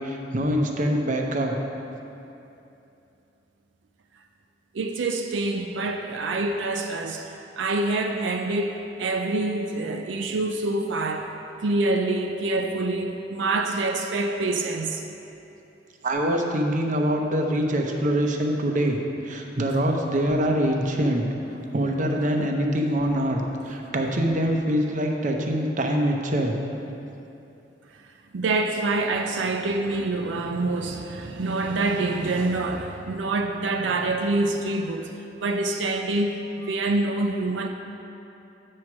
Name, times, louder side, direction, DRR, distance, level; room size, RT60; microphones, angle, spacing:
voice 1, 0.0-1.5 16.0-19.0 19.2-21.2 21.7-26.6, equal, 45° right, 2 dB, 0.7 m, -24 dB
voice 2, 4.7-11.3 11.6-15.1 28.3-35.1 35.4-37.7, right 2 dB, 85° right, 4 dB, 0.5 m, -26 dB
8.6 x 4.6 x 6.0 m, 2.8 s
head